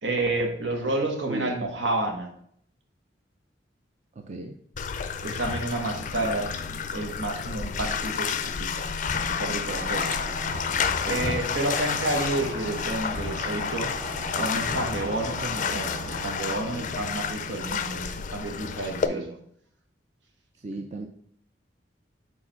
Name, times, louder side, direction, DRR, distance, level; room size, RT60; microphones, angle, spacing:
voice 1, 0.0-2.3 5.2-8.9 9.2-10.2 11.0-13.9 14.3-19.4, right 2 dB, 85° right, 2 dB, 1.4 m, -30 dB
voice 2, 1.3-1.6 4.1-4.6 19.0-19.3 20.6-21.1, right 1 dB, 40° right, 5 dB, 0.5 m, -36 dB
Bathtub (filling or washing), 4.8-19.1, left 6 dB, 45° left, 0.4 m, -30 dB
sound 1, 9.7-16.3, right 1 dB, 65° right, 1.4 m, -38 dB
4.8 x 4.2 x 5.7 m, 0.66 s
head